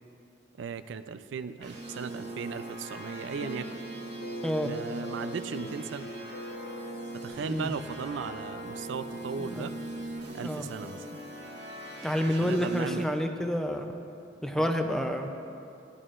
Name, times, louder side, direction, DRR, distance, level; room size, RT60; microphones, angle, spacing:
voice 1, 0.6-3.7 4.6-6.1 7.1-9.7 10.3-11.0 12.3-13.1 14.5-14.7, right 5 dB, 85° right, 12 dB, 0.4 m, -37 dB
sound 1, 1.6-13.0, right 1 dB, 65° right, 1.2 m, -41 dB
sound 2, 3.4-7.8, left 2 dB, 80° left, 0.9 m, -43 dB
voice 2, 12.0-13.8 14.4-15.4, equal, 5° left, 5 dB, 0.5 m, -29 dB
14.0 x 11.0 x 2.5 m, 2.7 s
head